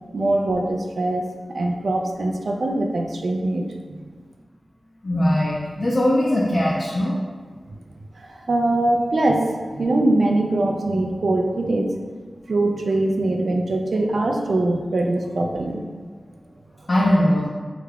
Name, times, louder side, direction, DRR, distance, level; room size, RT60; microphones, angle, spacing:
voice 1, 0.1-1.2 1.5-4.0 8.2-9.4 9.7-11.9 12.5-15.8, right 2 dB, 70° right, 2 dB, 0.3 m, -22 dB
voice 2, 4.8-7.2 16.9-17.5, left 1 dB, 40° left, -5 dB, 0.4 m, -20 dB
3.3 x 2.4 x 3.4 m, 1.5 s
wide cardioid pair, 95°, 0 cm